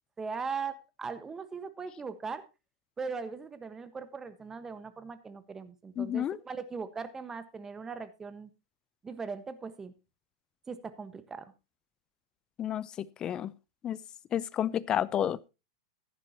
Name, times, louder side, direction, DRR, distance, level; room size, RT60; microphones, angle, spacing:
voice 1, 0.2-2.4 3.0-8.5 9.0-9.9 10.7-11.5, right 5 dB, 15° right, 1.3 m, -39 dB
voice 2, 6.0-6.4 12.6-13.5 13.8-14.0 14.3-15.5, left 10 dB, 30° left, 0.6 m, -31 dB
14.5 x 10.5 x 2.9 m
hypercardioid pair, 105°, 3 cm